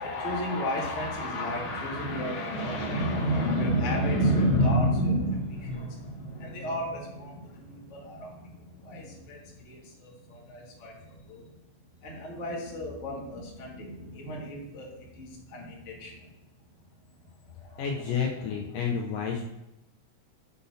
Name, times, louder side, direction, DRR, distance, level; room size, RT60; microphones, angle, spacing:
voice 1, 0.0-11.4 12.0-16.3 17.6-17.9, equal, 45° left, -3 dB, 0.9 m, -31 dB
voice 2, 17.8-19.4, left 6 dB, 75° left, 1 dB, 2.0 m, -30 dB
6.9 x 5.2 x 5.6 m, 0.93 s
omnidirectional pair, 4.6 m